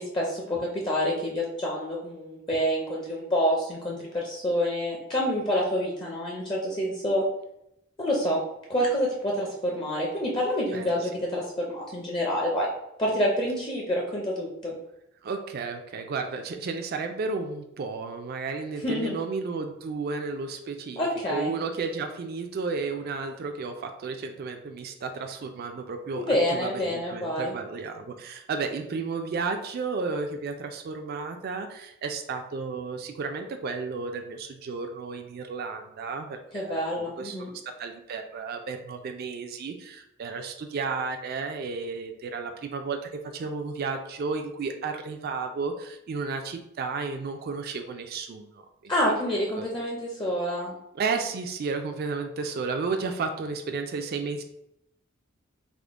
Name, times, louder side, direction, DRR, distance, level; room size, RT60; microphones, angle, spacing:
voice 1, 0.0-7.2 8.0-8.4 8.7-12.7 13.0-14.8 18.8-19.1 21.0-21.5 26.1-27.5 36.5-37.5 48.9-50.7, equal, 25° left, -2 dB, 0.5 m, -27 dB
voice 2, 15.2-37.4 37.8-48.9 49.3-49.6 50.9-54.4, right 4 dB, 50° right, 5 dB, 0.3 m, -33 dB
3.6 x 2.1 x 3.5 m, 0.80 s
head